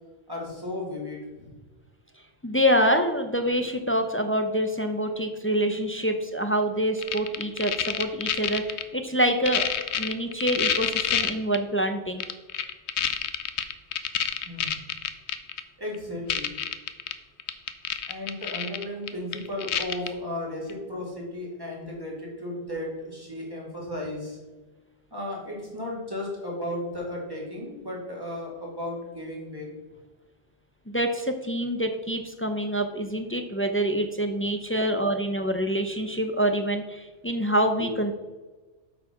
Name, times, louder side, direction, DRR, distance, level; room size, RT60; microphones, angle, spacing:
voice 1, 0.3-1.5 14.4-14.7 15.8-16.6 18.1-24.4 25.1-29.7, left 1 dB, 20° right, -4 dB, 2.6 m, -35 dB
voice 2, 2.4-9.7 10.0-12.2 30.9-38.1, equal, 15° left, 6 dB, 0.4 m, -26 dB
sound 1, 7.0-8.8 9.3-11.6 12.2-15.6 15.9-16.0 16.3-17.1 17.4-20.1 20.7-20.8, left 9 dB, 70° left, 0.9 m, -27 dB
8.3 x 5.0 x 5.7 m, 1.2 s
omnidirectional pair, 1.2 m